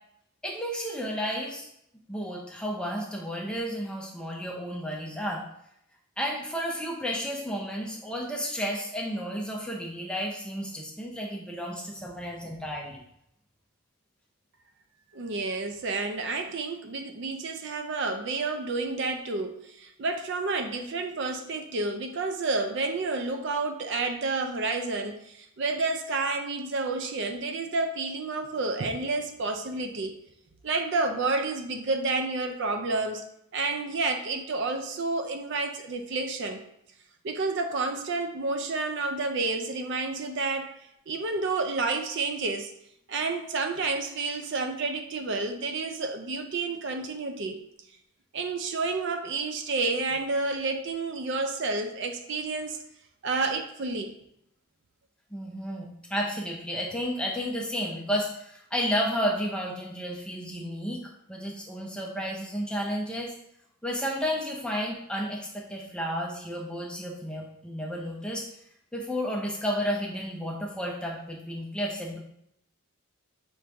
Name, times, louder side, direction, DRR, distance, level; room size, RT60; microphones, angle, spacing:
voice 1, 0.4-1.7 2.1-5.4 6.2-13.0 55.3-61.0 61.3-63.3 63.8-68.4 68.9-72.2, equal, 5° left, -1 dB, 0.5 m, -32 dB
voice 2, 15.1-30.2 30.6-33.2 33.5-36.6 37.2-40.7 41.1-42.7 43.1-47.6 48.3-52.8 53.2-54.2, right 3 dB, 50° right, 5 dB, 0.4 m, -30 dB
6.0 x 2.6 x 3.3 m, 0.76 s
head